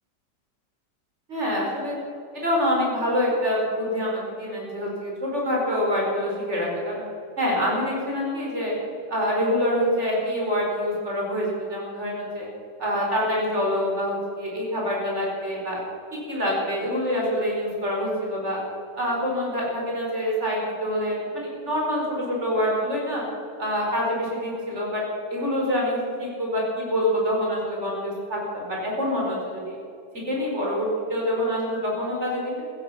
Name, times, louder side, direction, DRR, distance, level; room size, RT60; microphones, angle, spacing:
voice 1, 1.3-2.0 2.3-7.1 7.4-8.8 9.1-12.5 12.8-15.8 16.1-18.6 18.9-23.2 23.6-25.0 25.3-29.7 30.3-32.6, equal, 40° right, -3 dB, 5.1 m, -26 dB
16.0 x 14.5 x 5.8 m, 2.6 s
omnidirectional pair, 1.8 m